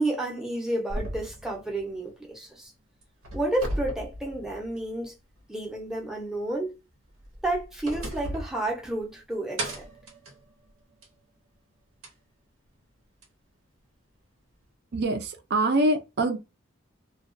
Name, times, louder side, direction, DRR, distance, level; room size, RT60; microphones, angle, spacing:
voice 1, 0.0-2.7 3.3-5.1 5.5-6.7 7.4-9.8, right 2 dB, 5° right, 0.6 m, -30 dB
sound 1, 0.9-2.7 3.0-5.0 5.4-5.5 7.1-9.2 9.6-11.2 12.0-12.1 13.2-13.3, right 1 dB, 80° right, 0.9 m, -37 dB
voice 2, 14.9-16.4, right 2 dB, 50° right, 0.5 m, -24 dB
2.2 x 2.2 x 2.5 m
head